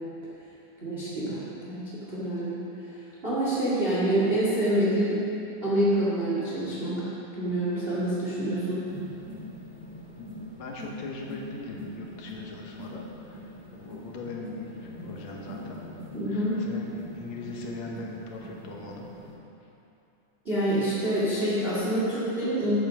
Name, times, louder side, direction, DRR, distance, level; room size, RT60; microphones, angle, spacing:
voice 1, 0.8-2.6 3.2-5.2 5.6-8.8 16.1-16.6 20.4-22.8, right 1 dB, 20° right, -8 dB, 1.9 m, -27 dB
sound 1, 8.9-19.3, left 1 dB, 55° right, 3.0 m, -43 dB
voice 2, 10.6-15.8 16.3-19.1, left 2 dB, 65° left, 0 dB, 2.1 m, -40 dB
9.2 x 8.3 x 6.2 m, 2.8 s
omnidirectional pair, 3.8 m